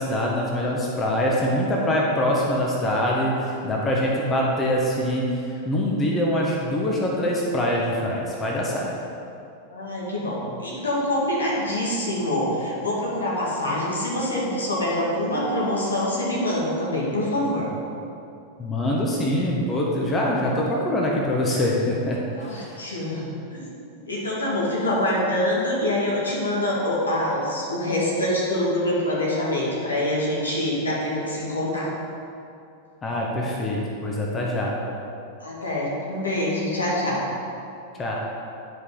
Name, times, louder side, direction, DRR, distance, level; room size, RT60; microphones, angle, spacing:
voice 1, 0.0-8.9 18.6-22.2 22.5-22.8 33.0-34.8 38.0-38.2, left 1 dB, 20° left, -3 dB, 1.2 m, -24 dB
voice 2, 9.7-17.7 22.4-23.2 23.5-23.7 24.1-31.9 35.4-37.2, left 1 dB, 75° left, -5 dB, 2.0 m, -25 dB
11.0 x 5.0 x 3.9 m, 2.6 s
figure-of-eight pair, 90°, 0 cm